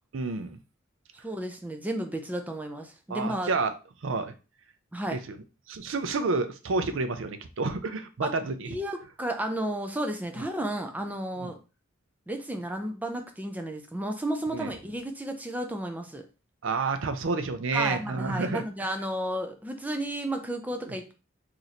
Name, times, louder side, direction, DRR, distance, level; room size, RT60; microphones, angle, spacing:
voice 1, 0.1-0.6 3.1-3.7 4.0-4.3 5.1-5.4 5.7-8.7 10.4-10.5 11.4-11.5 14.5-14.7 16.6-18.6 20.9-21.0, right 3 dB, 65° right, 9 dB, 0.5 m, -29 dB
voice 2, 1.2-3.5 4.9-5.2 8.2-8.3 8.6-11.6 12.3-16.3 17.7-21.1, right 1 dB, 10° right, 5 dB, 0.4 m, -32 dB
3.0 x 2.6 x 4.0 m, 0.33 s
head